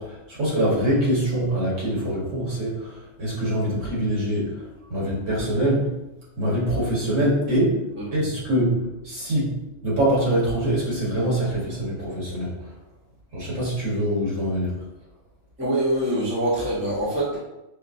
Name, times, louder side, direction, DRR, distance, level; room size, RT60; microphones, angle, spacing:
voice 1, 0.0-6.0 6.4-7.8 8.1-9.6 9.8-12.7 13.3-14.7, right 1 dB, 80° right, -6 dB, 1.8 m, -24 dB
voice 2, 15.6-17.4, right 1 dB, 10° right, -6 dB, 0.8 m, -24 dB
5.1 x 2.1 x 2.6 m, 0.96 s
omnidirectional pair, 1.3 m